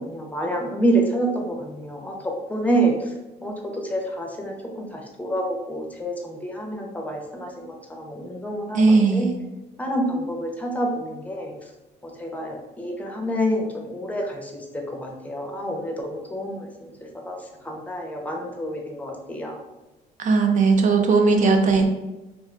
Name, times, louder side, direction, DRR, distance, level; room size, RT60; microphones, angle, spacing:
voice 1, 0.1-3.1 3.4-9.3 9.8-11.5 12.0-16.9 17.3-17.4 17.6-19.6, right 1 dB, 10° left, 0 dB, 0.6 m, -28 dB
voice 2, 8.7-9.4 20.2-21.9, right 4 dB, 50° right, 4 dB, 0.5 m, -18 dB
2.5 x 2.2 x 3.7 m, 1.0 s
cardioid pair, 110°, 17 cm